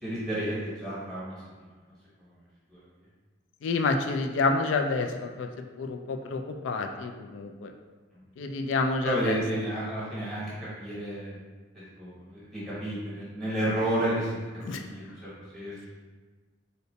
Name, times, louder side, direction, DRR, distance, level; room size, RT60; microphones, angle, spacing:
voice 1, 0.0-1.7 2.2-2.3 2.7-2.8 6.3-6.4 9.0-11.4 11.7-14.4 14.7-15.9, right 1 dB, ahead, -10 dB, 1.0 m, -32 dB
voice 2, 3.6-5.5 5.8-7.7 8.4-9.4 14.6-14.8, left 3 dB, 80° left, 4 dB, 0.3 m, -28 dB
3.9 x 2.1 x 2.7 m, 1.3 s
head